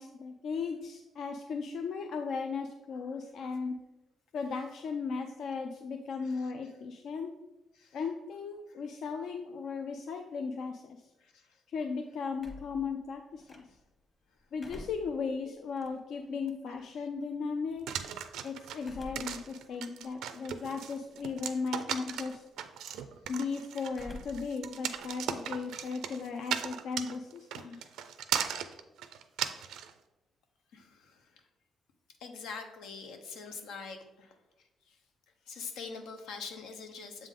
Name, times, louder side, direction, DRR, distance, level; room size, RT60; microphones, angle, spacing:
voice 1, 0.0-3.7 4.3-7.3 7.9-11.0 11.7-13.4 14.5-17.9 18.4-22.4 23.3-27.8, left 5 dB, 70° left, 4 dB, 0.4 m, -36 dB
voice 2, 6.2-6.5 7.8-8.0 8.7-8.8 11.2-11.6 17.0-17.1 27.6-27.9 30.7-31.4 32.2-34.3 34.9-35.0 35.5-37.3, left 5 dB, 90° left, 5 dB, 0.7 m, -45 dB
sound 1, 12.4-14.0 14.4-17.0 18.8-19.5 20.0-20.1 21.1-21.6 21.9-22.3 23.9-24.6 24.8-26.3, left 2 dB, 25° left, 1.1 m, -50 dB
sound 2, 17.9-29.9, right 9 dB, 85° right, 0.4 m, -37 dB
7.3 x 3.6 x 3.7 m, 1.0 s
cardioid pair, 90°, 0 cm